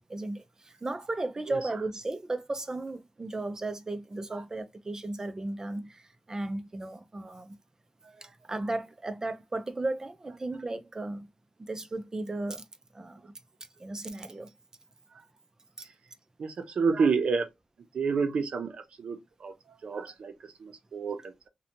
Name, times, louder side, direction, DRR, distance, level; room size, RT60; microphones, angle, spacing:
voice 1, 0.1-7.6 8.2-11.3 11.6-12.6 12.9-13.3 13.8-14.5, right 2 dB, 30° right, 0.4 m, -35 dB
voice 2, 16.4-17.5 17.9-21.5, right 5 dB, 80° right, 0.5 m, -30 dB
2.8 x 2.2 x 2.5 m
wide cardioid pair, 80°, 2 cm